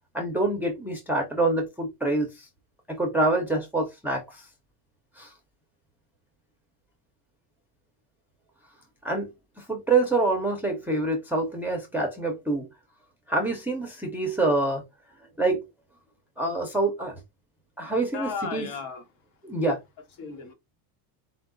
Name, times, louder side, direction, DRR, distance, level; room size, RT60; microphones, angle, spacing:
voice 1, 0.1-2.5 2.9-4.5 5.2-5.3 9.0-9.3 9.6-12.7 13.3-14.8 15.4-15.7 16.4-17.1 17.8-18.8 19.4-19.8, right 2 dB, 5° right, 0.4 m, -26 dB
voice 2, 18.1-19.0 20.2-20.5, left 5 dB, 75° left, 1.4 m, -34 dB
4.5 x 2.2 x 3.7 m
cardioid pair, 160°, 49 cm